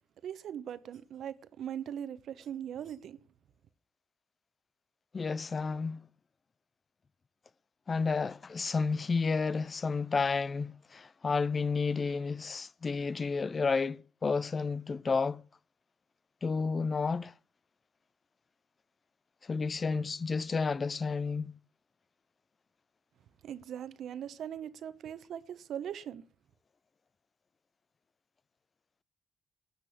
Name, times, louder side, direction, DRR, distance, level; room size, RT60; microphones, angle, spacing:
voice 1, 0.2-3.2 23.4-26.2, right 9 dB, 70° right, 1.0 m, -40 dB
voice 2, 5.1-6.0 7.9-15.4 16.4-17.3 19.5-21.5, left 4 dB, 35° left, 0.5 m, -31 dB
12.5 x 7.5 x 8.7 m
cardioid pair, 90°, 0 cm